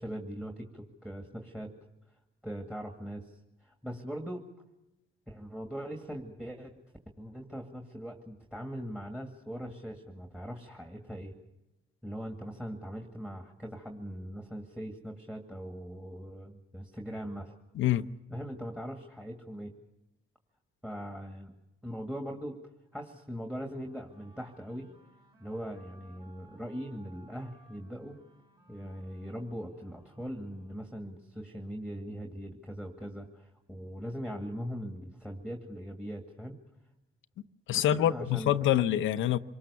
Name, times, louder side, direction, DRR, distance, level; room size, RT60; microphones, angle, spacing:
voice 1, 0.0-1.7 2.4-4.4 5.3-6.7 7.2-11.4 12.0-17.6 18.3-19.7 20.8-21.5 21.8-22.6 22.9-24.9 25.4-28.2 28.7-36.6 37.9-38.5, equal, 5° right, 2.3 m, -40 dB
voice 2, 17.7-18.1 37.7-39.4, left 12 dB, 85° left, 0.8 m, -26 dB
sound 1, 23.7-31.1, right 2 dB, 25° right, 5.7 m, -61 dB
26.5 x 19.5 x 7.0 m
cardioid pair, 90°, 20 cm